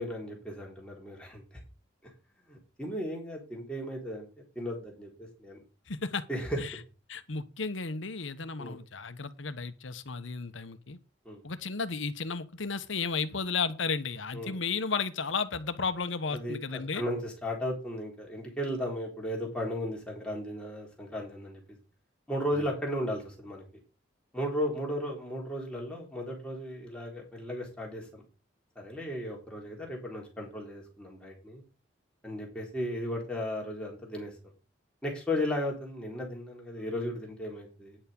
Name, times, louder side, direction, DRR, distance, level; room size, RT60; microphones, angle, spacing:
voice 1, 0.0-1.4 2.5-4.3 4.6-5.6 6.3-6.6 8.6-8.8 11.2-11.4 14.3-14.6 16.3-21.6 22.3-23.6 24.3-28.2 28.8-31.6 32.2-34.3 35.0-38.0, equal, 5° left, 4.0 m, -35 dB
voice 2, 5.9-6.3 6.6-6.8 7.1-11.0 11.4-17.0, left 5 dB, 80° left, 1.1 m, -33 dB
9.9 x 7.2 x 5.3 m
head